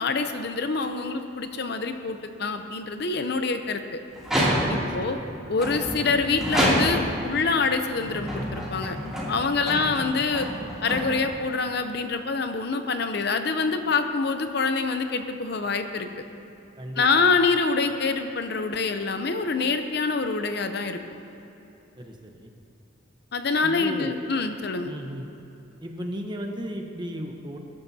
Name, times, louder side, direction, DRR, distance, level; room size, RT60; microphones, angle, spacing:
voice 1, 0.0-4.0 4.7-5.2 5.5-9.0 9.3-10.5 10.8-16.1 17.0-21.0 23.3-24.9, left 4 dB, 55° left, 7 dB, 0.7 m, -26 dB
sound 1, 4.2-5.0 5.6-7.2 7.9-11.5, equal, 5° right, 2.8 m, -27 dB
voice 2, 4.7-5.3 9.7-9.9 16.8-17.2 22.0-22.5 23.6-24.1 24.9-25.3 25.8-27.6, equal, 20° right, 3 dB, 0.9 m, -35 dB
22.0 x 11.0 x 2.8 m, 3.0 s
head